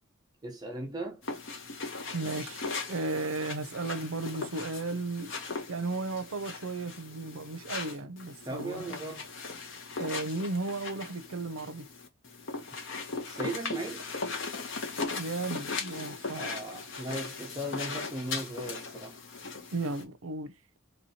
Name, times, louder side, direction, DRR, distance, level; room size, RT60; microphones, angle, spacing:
voice 1, 0.4-1.2 8.4-9.2 13.3-14.1 16.4-19.2, right 1 dB, 20° right, 0.8 m, -37 dB
sound 1, 1.2-20.0, left 4 dB, 65° left, 1.0 m, -39 dB
voice 2, 2.1-5.3 5.7-9.0 10.0-11.9 15.2-16.5 19.7-20.6, right 2 dB, 80° right, 0.6 m, -35 dB
3.2 x 3.0 x 2.8 m
head